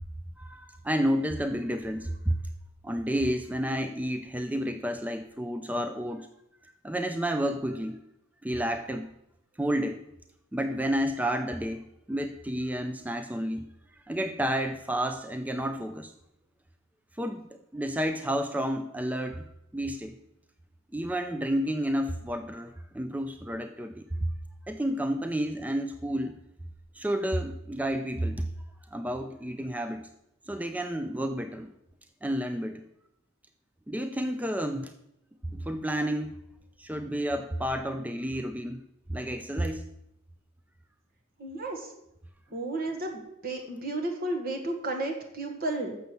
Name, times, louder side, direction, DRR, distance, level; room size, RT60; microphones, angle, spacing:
voice 1, 0.4-2.4 2.8-6.3 6.6-8.0 8.4-9.1 9.6-10.0 10.5-13.7 14.1-16.1 17.2-20.2 20.9-24.0 24.7-26.4 26.9-28.5 28.9-30.1 30.5-31.7 32.2-32.8 33.9-34.9 35.5-36.3 36.8-38.8 39.1-39.8, equal, 5° right, 8 dB, 0.4 m, -30 dB
voice 2, 41.4-41.9 42.5-46.0, right 2 dB, 45° right, 3 dB, 1.5 m, -33 dB
6.7 x 6.7 x 7.7 m, 0.82 s
head